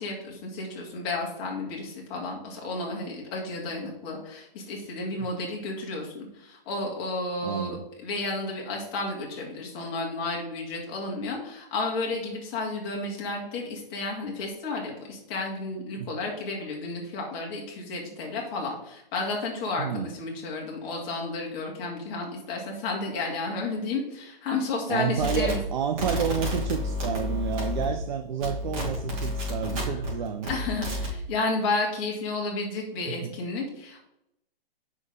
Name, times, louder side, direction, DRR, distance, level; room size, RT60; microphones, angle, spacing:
voice 1, 0.0-25.6 29.7-30.0 30.4-34.0, left 3 dB, 25° left, -1 dB, 2.3 m, -32 dB
voice 2, 7.4-7.8 16.0-16.1 19.8-20.1 24.9-30.5 33.1-33.3, right 7 dB, 50° right, 8 dB, 0.7 m, -30 dB
sound 1, 25.2-28.1 28.4-30.1 30.4-31.1, left 1 dB, 35° right, 3.2 m, -30 dB
7.8 x 6.1 x 3.7 m, 0.81 s
hypercardioid pair, 160°, 30 cm